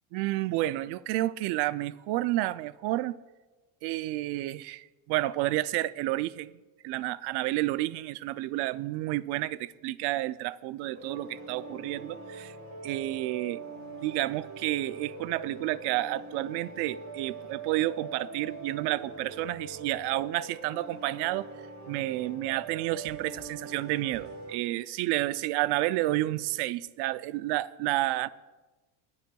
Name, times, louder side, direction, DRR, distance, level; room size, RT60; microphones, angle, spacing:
voice 1, 0.1-3.1 3.8-6.5 6.8-12.6 12.8-13.6 14.0-21.5 21.9-28.3, right 16 dB, 60° right, 0.5 m, -30 dB
sound 1, 10.9-24.6, right 3 dB, 40° right, 4.2 m, -43 dB
28.0 x 9.6 x 2.3 m
cardioid pair, 135°, 46 cm